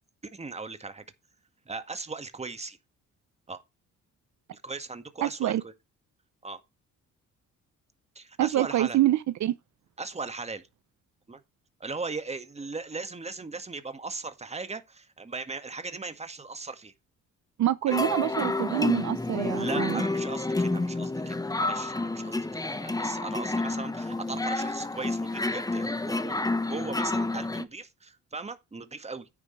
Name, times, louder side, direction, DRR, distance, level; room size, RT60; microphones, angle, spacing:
voice 1, 0.3-1.0 1.7-2.8 3.5-3.6 4.5-5.7 6.4-6.6 8.2-9.0 10.0-10.7 11.3-11.4 11.8-16.9 17.9-18.0 19.5-29.3, right 3 dB, 20° right, 1.9 m, -38 dB
voice 2, 5.2-5.6 8.4-9.6 17.6-20.0, right 13 dB, 65° right, 0.9 m, -26 dB
sound 1, 17.9-27.6, left 2 dB, 10° left, 1.2 m, -29 dB
10.0 x 9.5 x 3.3 m
cardioid pair, 90°, 30 cm